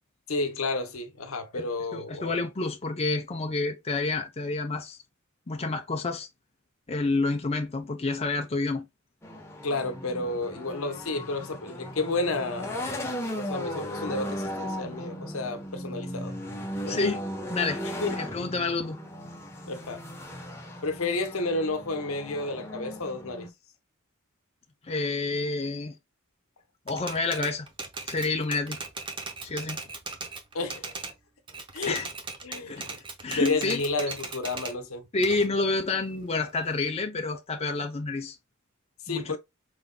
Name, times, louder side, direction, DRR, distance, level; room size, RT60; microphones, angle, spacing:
voice 1, 0.3-2.4 9.6-13.0 13.3-16.3 16.8-17.0 17.8-18.1 19.7-20.0 20.8-23.5 30.5-30.9 31.7-32.0 32.4-33.0 33.3-35.0 39.1-39.4, left 3 dB, 75° left, 0.9 m, -31 dB
voice 2, 1.5-5.0 5.5-6.3 6.9-8.8 16.9-17.2 17.5-17.8 18.2-19.0 24.8-26.0 26.9-27.7 28.1-28.8 29.4-29.8 31.9-32.1 32.7-32.8 33.2-33.8 35.1-38.4 39.1-39.4, left 3 dB, 30° left, 0.6 m, -29 dB
sound 1, 9.2-23.5, equal, 10° left, 1.0 m, -37 dB
Typewriter, 26.9-31.2 31.5-34.8 35.2-36.9, right 4 dB, 25° right, 0.7 m, -38 dB
4.7 x 3.8 x 2.2 m
head